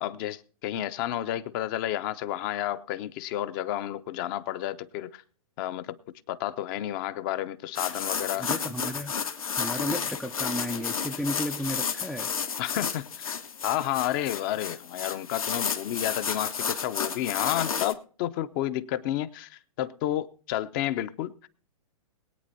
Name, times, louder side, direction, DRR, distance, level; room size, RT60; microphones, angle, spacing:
voice 1, 0.0-5.2 5.6-6.0 6.3-8.5 12.6-13.3 13.6-21.3, left 13 dB, 35° left, 0.8 m, -31 dB
sound 1, 7.7-17.9, left 6 dB, 75° left, 1.7 m, -32 dB
voice 2, 8.4-9.1 9.6-12.3, equal, ahead, 0.4 m, -33 dB
22.0 x 8.9 x 2.7 m
figure-of-eight pair, 120°, 18 cm